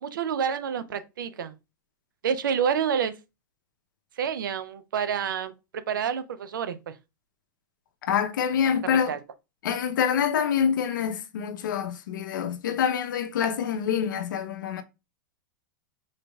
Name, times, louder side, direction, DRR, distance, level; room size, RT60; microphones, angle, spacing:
voice 1, 0.0-1.5 2.2-3.1 4.2-6.9 9.1-9.2, right 7 dB, 90° right, 0.5 m, -28 dB
voice 2, 8.0-9.2 9.6-14.8, left 8 dB, 80° left, 0.6 m, -26 dB
4.0 x 3.0 x 2.2 m
hypercardioid pair, 125°, 10 cm